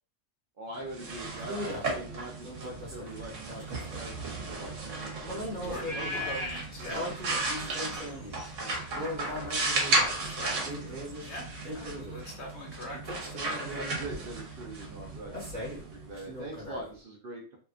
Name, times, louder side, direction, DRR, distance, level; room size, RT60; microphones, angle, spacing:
voice 1, 0.6-6.1 6.9-8.2 8.6-11.0 13.4-17.6, right 2 dB, 55° right, 0 dB, 0.7 m, -44 dB
sound 1, 0.8-16.5, right 2 dB, 75° right, 1.1 m, -35 dB
sound 2, 1.4-2.0 2.4-4.1 5.2-6.4 6.8-8.4 8.9-10.2 10.6-11.3 11.6-12.3 12.9-14.3 15.3-15.9 16.1-16.9, left 1 dB, 40° right, 1.0 m, -40 dB
sound 3, 3.2-10.0, left 1 dB, 40° left, 0.4 m, -42 dB
voice 2, 5.6-7.0 10.2-10.9 11.2-13.0, left 1 dB, 65° left, 0 dB, 1.0 m, -42 dB
2.8 x 2.3 x 2.4 m, 0.39 s
omnidirectional pair, 1.3 m